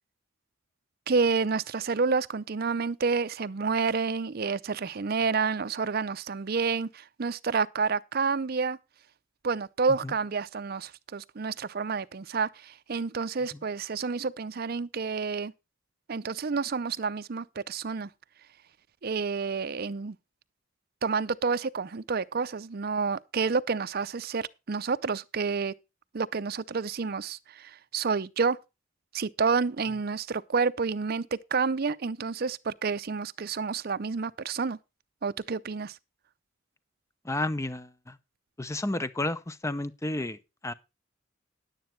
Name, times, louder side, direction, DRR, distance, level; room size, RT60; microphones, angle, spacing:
voice 1, 1.1-8.8 9.4-15.5 16.1-18.1 19.0-20.2 21.0-25.7 26.1-28.6 29.1-34.8 35.2-36.0, right 5 dB, 50° right, 0.5 m, -29 dB
voice 2, 37.2-38.2 38.6-40.7, left 2 dB, 15° left, 0.7 m, -32 dB
10.5 x 9.2 x 4.5 m
head